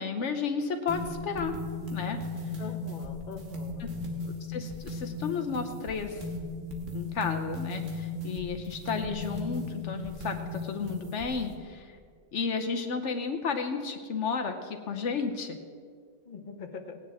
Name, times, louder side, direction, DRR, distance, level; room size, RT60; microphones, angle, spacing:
voice 1, 0.0-1.6 1.9-2.2 3.8-3.9 4.5-6.2 6.9-12.0 12.3-15.6, left 5 dB, 70° left, 5 dB, 1.1 m, -32 dB
sound 1, 0.9-11.5, left 2 dB, 85° right, 1.8 m, -37 dB
voice 2, 2.6-3.8 16.2-17.0, left 5 dB, 40° left, 4 dB, 1.0 m, -42 dB
18.0 x 9.6 x 3.5 m, 2.1 s
omnidirectional pair, 1.3 m